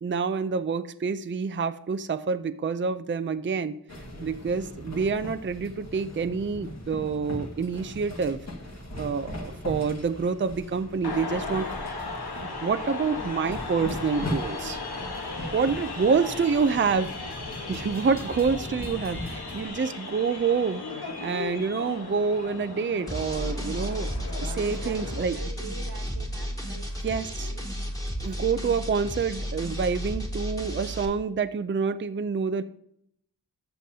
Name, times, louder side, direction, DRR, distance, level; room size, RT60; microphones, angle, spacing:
voice 1, 0.0-3.8 4.2-8.4 9.0-11.7 12.6-14.8 15.5-17.1 17.7-20.8 21.2-24.1 24.4-25.3 27.0-27.5 28.2-32.6, right 5 dB, 30° right, 11 dB, 0.5 m, -27 dB
sound 1, 3.9-19.7, left 1 dB, 45° left, 1.8 m, -39 dB
voice 2, 4.1-4.4 16.1-16.4 17.6-17.7 18.0-18.2 24.5-27.7 28.2-28.5, right 4 dB, 85° right, 3 dB, 1.4 m, -45 dB
sound 2, 11.0-25.2, left 3 dB, 85° left, 1.3 m, -37 dB
sound 3, 23.1-31.1, equal, 10° left, 2.3 m, -33 dB
13.5 x 7.0 x 2.8 m, 0.71 s
wide cardioid pair, 50°, 38 cm